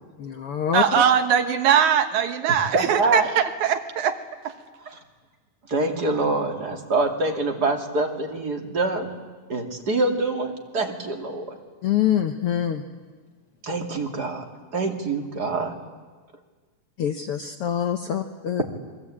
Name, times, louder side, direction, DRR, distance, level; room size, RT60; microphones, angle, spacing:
voice 1, 0.2-1.0 11.8-12.8 17.0-18.6, left 9 dB, 65° left, 6 dB, 1.5 m, -25 dB
voice 2, 0.7-4.1 4.4-4.5, right 8 dB, 70° right, 8 dB, 2.6 m, -21 dB
voice 3, 2.7-3.3 4.8-5.0 5.7-9.1 9.5-11.6 13.6-14.4 14.7-15.8, right 3 dB, 35° right, 3 dB, 2.7 m, -25 dB
28.5 x 22.0 x 8.6 m, 1.4 s
omnidirectional pair, 3.6 m